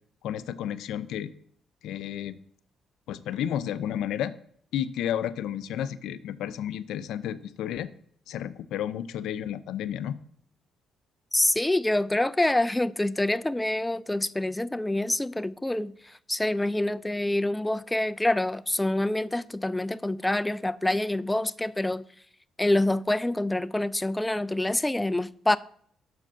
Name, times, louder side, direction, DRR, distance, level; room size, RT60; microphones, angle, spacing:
voice 1, 0.2-1.3 1.8-2.4 3.1-4.4 4.7-7.9 8.3-10.2, left 10 dB, 85° left, 0.4 m, -32 dB
voice 2, 11.3-22.0 22.6-25.6, left 1 dB, 10° left, 0.3 m, -26 dB
6.4 x 4.9 x 5.7 m
cardioid pair, 90°, 0 cm